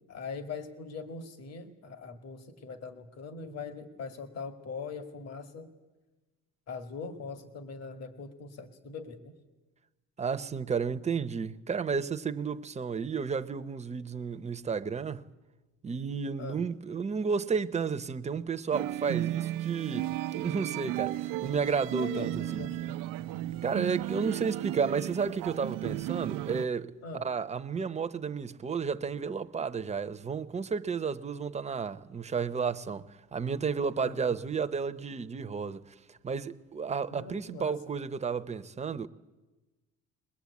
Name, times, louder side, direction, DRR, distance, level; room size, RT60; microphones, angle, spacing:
voice 1, 0.1-5.7 6.7-9.3 16.4-16.6 22.0-23.0 27.0-27.3 34.0-34.3 37.1-37.8, left 4 dB, 50° left, 2.1 m, -41 dB
voice 2, 10.2-15.2 15.8-22.6 23.6-33.0 33.3-39.1, right 5 dB, 20° right, 0.8 m, -32 dB
sound 1, 18.7-26.7, right 15 dB, 90° right, 0.7 m, -34 dB
21.5 x 20.5 x 8.4 m
cardioid pair, 130°, 32 cm